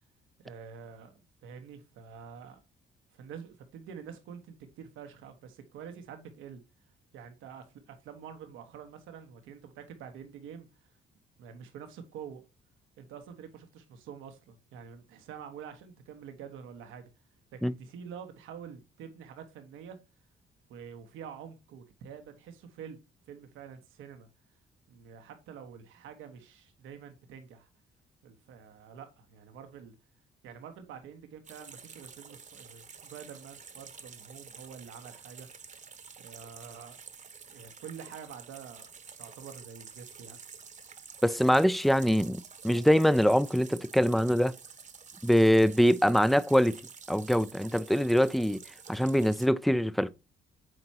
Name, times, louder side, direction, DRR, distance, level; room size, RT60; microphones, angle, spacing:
voice 1, 0.4-2.6 3.1-6.6 7.1-10.9 11.4-12.4 13.0-17.1 17.5-20.0 20.7-23.0 23.3-24.3 24.9-27.7 28.2-29.9 30.4-35.5 36.2-37.0 37.5-38.9 39.2-40.4, right 7 dB, 90° right, 1.2 m, -47 dB
sound 1, 31.4-49.5, right 6 dB, 40° right, 1.0 m, -49 dB
voice 2, 41.2-44.5 45.2-46.8 47.1-48.6 48.9-50.1, equal, ahead, 0.4 m, -24 dB
7.8 x 4.4 x 2.8 m
cardioid pair, 90°, 20 cm